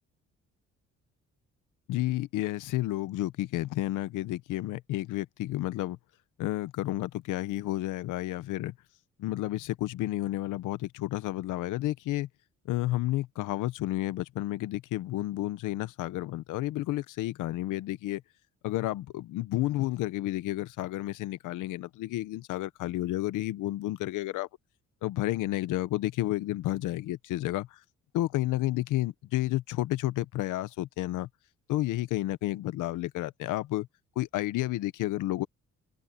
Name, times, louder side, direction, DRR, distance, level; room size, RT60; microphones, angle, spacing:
voice 1, 1.9-6.0 6.4-8.7 9.2-12.3 12.7-18.2 18.6-24.5 25.0-27.7 28.1-31.3 31.7-33.9 34.2-35.5, left 16 dB, 90° left, 0.9 m, -31 dB
open air
cardioid pair, 90°, 30 cm